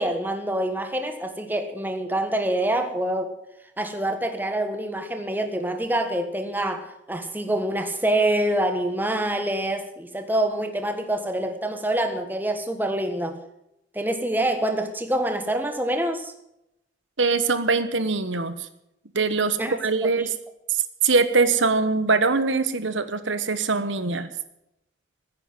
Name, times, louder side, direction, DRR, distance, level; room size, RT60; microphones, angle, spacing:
voice 1, 0.0-3.3 3.8-13.4 13.9-16.3 19.6-19.7 20.0-20.3, right 1 dB, 10° right, 6 dB, 1.5 m, -26 dB
voice 2, 17.2-18.6 19.1-20.3 21.0-24.3, right 4 dB, 85° right, 11 dB, 1.2 m, -22 dB
15.0 x 10.0 x 7.6 m, 0.83 s
head